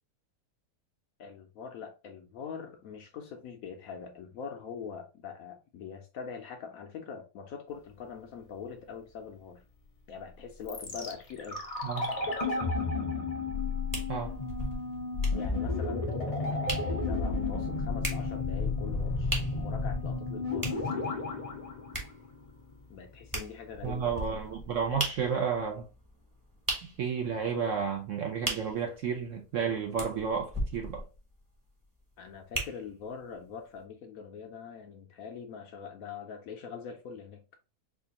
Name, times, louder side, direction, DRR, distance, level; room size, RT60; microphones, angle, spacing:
voice 1, 1.2-9.6 10.1-11.6 15.3-16.1 16.5-20.9 22.9-24.2 32.2-37.4, left 6 dB, 70° left, 0.8 m, -43 dB
sound 1, 10.7-22.7 22.9-23.0, left 3 dB, 40° left, 0.5 m, -32 dB
voice 2, 11.8-12.1 14.1-14.3 23.8-25.8 27.0-31.0, right 6 dB, 70° right, 0.7 m, -32 dB
sound 2, 13.9-33.2 33.8-33.9, right 1 dB, 20° right, 0.6 m, -40 dB
4.4 x 2.4 x 2.8 m
omnidirectional pair, 1.8 m